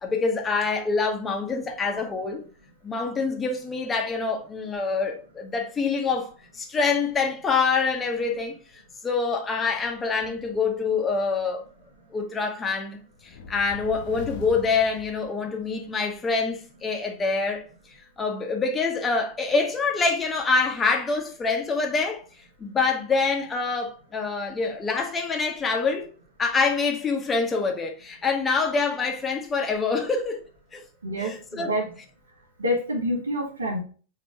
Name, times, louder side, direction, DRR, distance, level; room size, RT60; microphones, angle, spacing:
voice 1, 0.0-2.4 2.8-8.5 9.0-11.6 12.1-17.6 18.2-22.2 22.6-26.1 26.4-30.5 30.7-30.8 31.2-31.7, left 4 dB, 20° left, 0.9 m, -26 dB
sound 1, 13.2-15.9, left 4 dB, 50° left, 0.7 m, -41 dB
voice 2, 31.0-31.9 32.6-33.8, equal, 75° right, 1.2 m, -27 dB
5.2 x 2.9 x 3.4 m
figure-of-eight pair, 90°, 0 cm